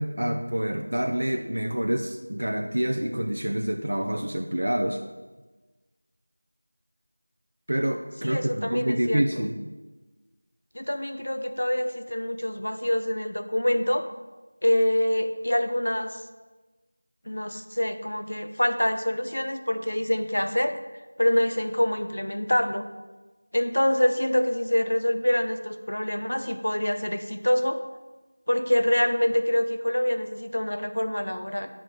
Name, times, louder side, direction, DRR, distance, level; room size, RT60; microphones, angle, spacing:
voice 1, 0.0-5.0 7.7-9.5, right 1 dB, 70° right, 4 dB, 0.8 m, -27 dB
voice 2, 8.2-9.2 10.7-14.1 14.6-16.2 17.3-20.8 21.2-22.9 23.5-27.8 28.5-31.7, left 1 dB, 75° left, 8 dB, 0.9 m, -25 dB
10.0 x 6.1 x 5.2 m, 1.2 s
figure-of-eight pair, 175°, 0 cm